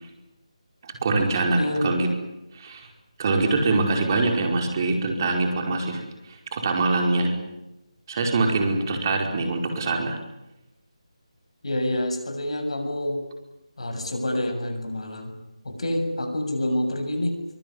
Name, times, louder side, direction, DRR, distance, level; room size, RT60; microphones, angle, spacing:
voice 1, 0.8-2.1 2.5-2.9 3.2-7.3 8.1-10.2, right 3 dB, 35° right, 3 dB, 5.1 m, -24 dB
voice 2, 1.6-1.9 11.6-13.3 13.8-15.4 15.6-17.4, left 1 dB, 65° left, 6 dB, 7.6 m, -27 dB
24.0 x 24.0 x 9.8 m, 0.95 s
figure-of-eight pair, 160°, 3 cm